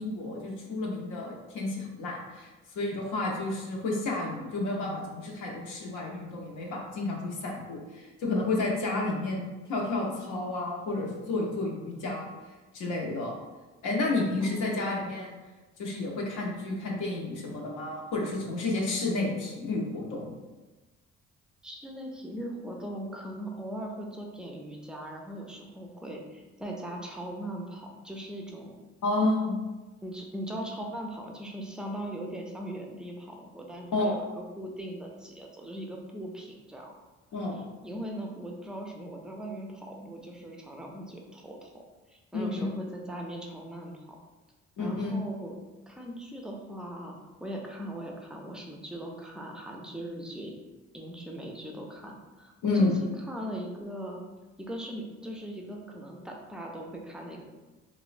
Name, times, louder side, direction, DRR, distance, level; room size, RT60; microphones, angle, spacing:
voice 1, 0.0-2.5 2.7-9.4 9.7-12.3 12.7-13.3 13.8-15.3 15.8-20.4 29.0-29.5 33.9-34.1 37.3-37.6 42.3-42.6 44.8-45.2 52.6-53.0, left 2 dB, 85° left, -2 dB, 0.6 m, -30 dB
voice 2, 14.4-14.9 21.6-28.8 30.0-36.9 37.8-41.8 42.1-44.2 44.8-45.5 45.9-50.5 50.9-54.2 54.6-57.4, right 1 dB, 5° right, 0 dB, 0.4 m, -40 dB
3.0 x 2.1 x 2.4 m, 1.2 s
cardioid pair, 90°, 30 cm